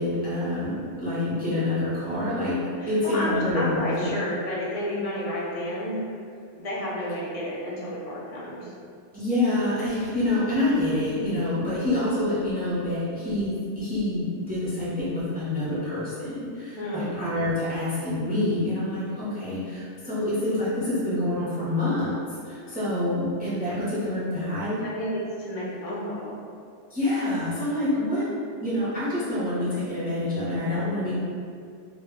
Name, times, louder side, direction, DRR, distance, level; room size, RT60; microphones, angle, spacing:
voice 1, 0.0-2.6 2.9-4.1 9.1-22.1 22.4-24.8 26.9-28.3 28.6-31.1, left 1 dB, 15° right, -10 dB, 0.3 m, -27 dB
voice 2, 2.8-6.0 6.6-8.7 16.7-17.1 24.8-26.3, equal, 50° left, -6 dB, 0.4 m, -31 dB
2.1 x 2.1 x 3.4 m, 2.3 s
omnidirectional pair, 1.2 m